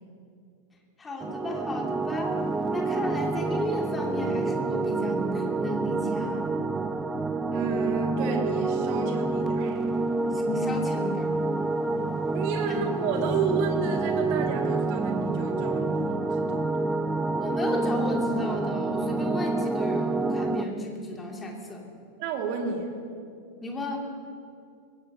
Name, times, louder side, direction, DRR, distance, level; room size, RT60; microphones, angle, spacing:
voice 1, 1.0-2.4 2.7-6.5 10.3-11.3 12.7-12.8 17.4-21.9 23.6-24.1, left 1 dB, 15° left, 0 dB, 2.4 m, -34 dB
sound 1, 1.2-20.6, right 3 dB, 15° right, 0.6 m, -28 dB
voice 2, 7.5-9.9 12.3-16.7 22.2-22.9, right 5 dB, 45° right, 2 dB, 2.2 m, -31 dB
22.0 x 16.5 x 2.8 m, 2.5 s
figure-of-eight pair, 90°, 0 cm